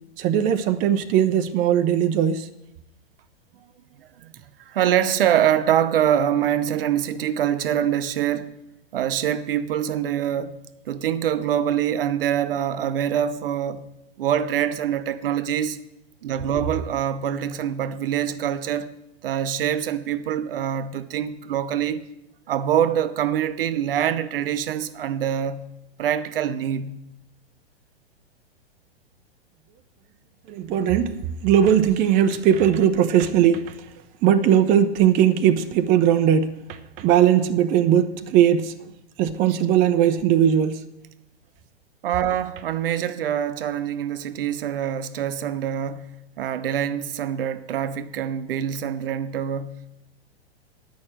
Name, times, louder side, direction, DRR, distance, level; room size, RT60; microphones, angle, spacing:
voice 1, 0.2-2.5 30.5-31.2 31.4-33.7 34.2-38.9 39.2-40.8, right 9 dB, 25° right, 0.6 m, -19 dB
voice 2, 4.7-8.6 8.9-10.6 10.9-13.8 14.2-15.8 16.2-19.0 19.2-22.0 22.5-25.7 26.0-27.0 39.5-39.6 42.0-50.0, right 10 dB, 60° right, 0.8 m, -24 dB
9.3 x 6.5 x 8.7 m
figure-of-eight pair, 110°, 32 cm